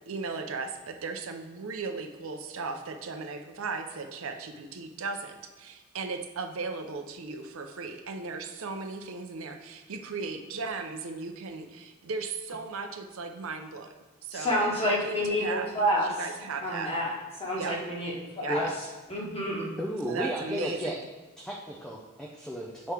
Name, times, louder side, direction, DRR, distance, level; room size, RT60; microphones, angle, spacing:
voice 1, 0.1-13.9 14.2-16.9 17.6-17.8 18.4-18.7 20.0-21.1, right 4 dB, 70° right, 6 dB, 0.6 m, -37 dB
voice 2, 14.3-16.1 16.6-17.1 17.4-18.7 19.1-19.7, equal, 25° left, -4 dB, 1.4 m, -28 dB
voice 3, 19.8-21.0 21.4-22.9, equal, 5° left, -3 dB, 0.4 m, -33 dB
7.2 x 4.7 x 3.4 m, 1.2 s
head